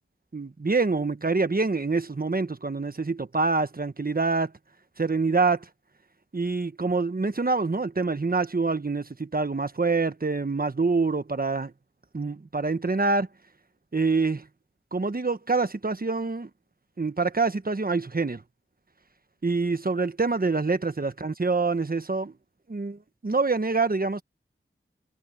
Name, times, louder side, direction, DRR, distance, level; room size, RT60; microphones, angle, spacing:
voice 1, 0.3-4.5 5.0-5.6 6.3-11.7 12.1-13.3 13.9-14.5 14.9-16.5 17.0-18.4 19.4-22.3 22.7-24.2, right 3 dB, 45° right, 1.2 m, -26 dB
wide cardioid pair, 50°, 21 cm